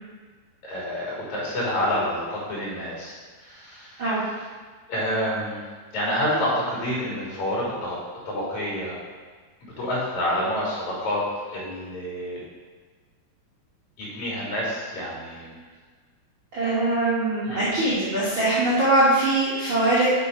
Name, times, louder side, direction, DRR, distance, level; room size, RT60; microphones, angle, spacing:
voice 1, 0.6-4.0 4.9-5.6 5.9-8.0 8.3-9.0 9.6-12.4 14.0-15.6 17.5-17.7, equal, 50° left, -5 dB, 3.3 m, -28 dB
voice 2, 16.5-20.1, right 2 dB, 80° right, -9 dB, 1.0 m, -22 dB
6.8 x 5.2 x 5.0 m, 1.5 s
omnidirectional pair, 4.7 m